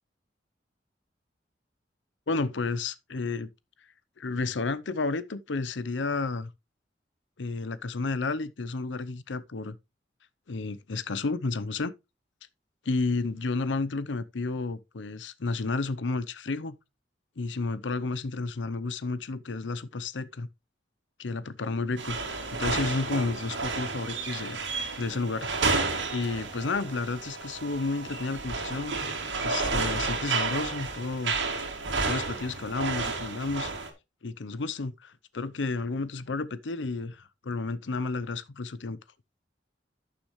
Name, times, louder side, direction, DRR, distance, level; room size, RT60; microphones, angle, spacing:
voice 1, 2.3-3.5 4.2-6.5 7.4-9.8 10.5-11.9 12.8-16.8 17.4-20.5 21.2-24.7 25.0-25.5 26.1-28.9 29.4-31.4 32.0-33.7 34.2-39.0, left 3 dB, 85° left, 0.7 m, -31 dB
sound 1, 22.0-33.9, right 4 dB, 85° right, 2.4 m, -31 dB
12.0 x 6.7 x 3.1 m
head